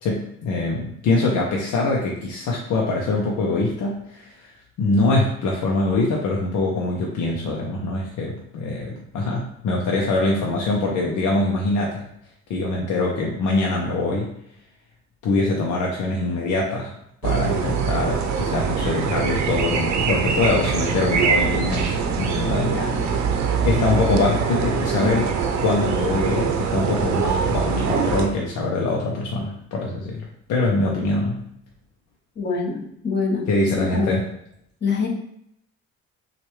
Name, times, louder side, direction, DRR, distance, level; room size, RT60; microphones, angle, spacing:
voice 1, 0.0-4.5 4.8-12.0 12.5-14.3 15.2-16.9 17.2-23.1 23.6-31.4 33.5-34.2, left 2 dB, 80° left, -2 dB, 0.8 m, -23 dB
sound 1, 17.2-28.3, right 6 dB, 65° right, 0.7 m, -23 dB
voice 2, 22.7-23.0 32.4-33.5 33.8-34.2 34.8-35.1, left 4 dB, 35° left, -2 dB, 1.3 m, -25 dB
6.0 x 2.5 x 3.2 m, 0.74 s
cardioid pair, 90°, 30 cm